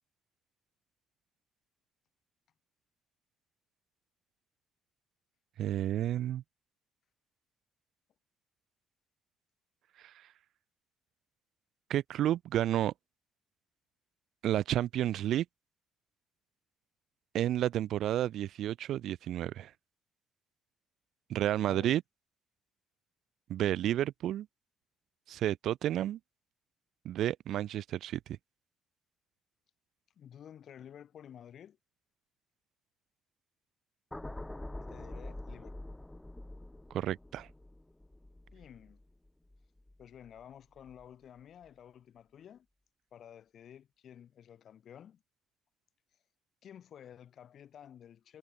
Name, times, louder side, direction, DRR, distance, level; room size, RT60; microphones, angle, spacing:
voice 1, 5.6-6.4 10.0-10.1 11.9-12.9 14.4-15.5 17.3-19.7 21.3-22.0 23.5-24.5 25.3-26.2 27.0-28.4 36.9-37.5, right 12 dB, 65° right, 0.4 m, -31 dB
voice 2, 21.7-22.0 30.2-31.8 34.8-35.8 38.5-39.0 40.0-42.7 43.1-45.2 46.6-48.4, left 9 dB, 50° left, 3.4 m, -52 dB
sound 1, 34.1-40.4 40.8-41.0, left 1 dB, 5° left, 1.7 m, -46 dB
cardioid pair, 150°, 0 cm